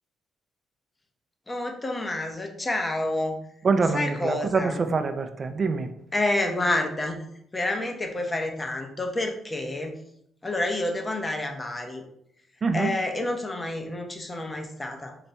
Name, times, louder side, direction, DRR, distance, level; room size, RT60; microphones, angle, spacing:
voice 1, 1.5-3.4 3.9-4.8 6.1-7.2 7.5-10.0 10.4-12.0 12.7-15.2, left 2 dB, 20° left, 3 dB, 0.7 m, -28 dB
voice 2, 3.6-5.9 12.6-12.9, right 4 dB, 40° right, 8 dB, 0.4 m, -25 dB
4.0 x 2.2 x 4.3 m, 0.73 s
cardioid pair, 90°, 0 cm